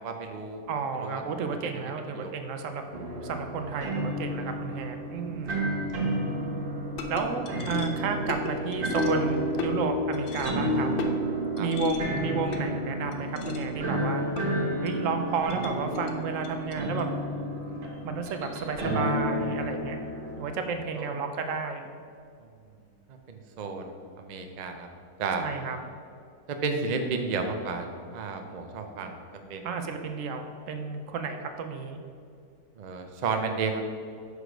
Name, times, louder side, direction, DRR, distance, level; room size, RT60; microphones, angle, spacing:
voice 1, 0.0-0.6 1.0-1.2 2.1-2.3 11.6-11.7 21.0-21.1 23.3-24.9 25.2-25.5 26.6-29.2 29.5-29.7 32.8-33.8, right 4 dB, 80° right, 5 dB, 0.3 m, -32 dB
voice 2, 0.7-2.8 3.2-5.6 7.1-10.9 11.6-14.3 14.8-17.1 18.0-20.0 20.4-21.9 25.4-25.8 29.6-32.0, right 5 dB, 65° right, 6 dB, 0.9 m, -32 dB
sound 1, 2.9-20.4, right 1 dB, 40° right, 1.1 m, -32 dB
sound 2, 6.9-19.3, left 1 dB, 65° left, 0.5 m, -33 dB
6.6 x 4.8 x 5.0 m, 2.2 s
omnidirectional pair, 1.6 m